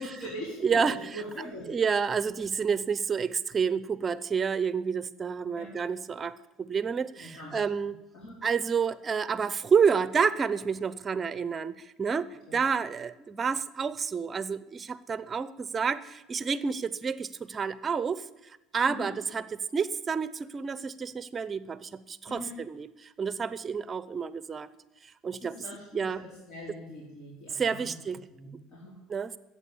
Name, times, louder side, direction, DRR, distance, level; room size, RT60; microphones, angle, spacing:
voice 1, 0.0-1.7 5.6-5.7 7.2-7.6 8.1-8.3 12.5-12.6 18.9-19.1 22.3-22.5 25.4-27.9 28.3-29.0, left 1 dB, 55° left, -5 dB, 4.7 m, -42 dB
voice 2, 0.6-1.2 1.7-8.0 8.4-24.7 25.2-25.6 25.9-26.2 27.5-28.2 29.1-29.4, right 6 dB, 25° right, 15 dB, 0.7 m, -29 dB
13.0 x 8.8 x 8.5 m, 0.97 s
cardioid pair, 120°, 0 cm